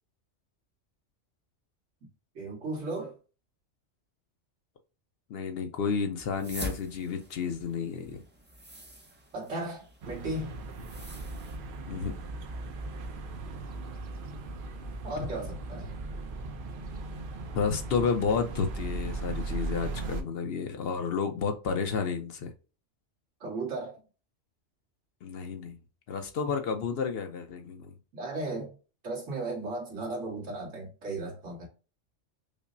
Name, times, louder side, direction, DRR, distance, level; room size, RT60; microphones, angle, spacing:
voice 1, 2.4-3.1 9.3-10.6 15.0-15.9 23.4-24.0 28.1-28.7 29.0-31.7, right 2 dB, 85° right, 1.9 m, -35 dB
voice 2, 5.3-8.2 11.9-12.1 17.5-22.5 25.2-25.8 26.1-27.9, left 5 dB, 65° left, 0.7 m, -31 dB
sound 1, 6.2-11.6, equal, 15° right, 0.3 m, -45 dB
sound 2, 10.0-20.2, right 3 dB, 60° right, 0.6 m, -38 dB
5.1 x 2.0 x 2.5 m
omnidirectional pair, 1.2 m